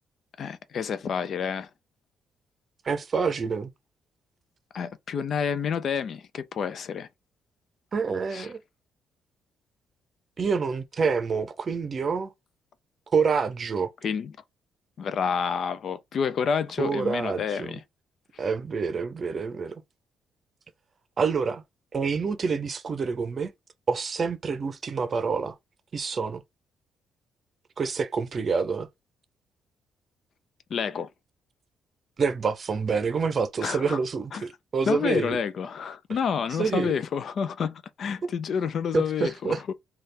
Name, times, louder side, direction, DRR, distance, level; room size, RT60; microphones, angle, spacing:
voice 1, 0.4-1.7 4.7-7.1 8.3-8.5 14.0-14.3 15.0-17.8 30.7-31.1 33.6-34.0 34.3-34.4 34.9-39.7, left 6 dB, 60° left, 0.4 m, -29 dB
voice 2, 2.8-3.7 7.9-8.6 10.4-12.3 13.1-13.9 16.8-17.7 18.4-19.8 21.2-21.6 21.9-23.5 23.9-25.6 25.9-26.4 27.8-28.9 32.2-35.4 36.6-36.9 38.9-39.6, right 5 dB, 45° right, 0.6 m, -27 dB
3.3 x 2.4 x 4.2 m
cardioid pair, 90°, 0 cm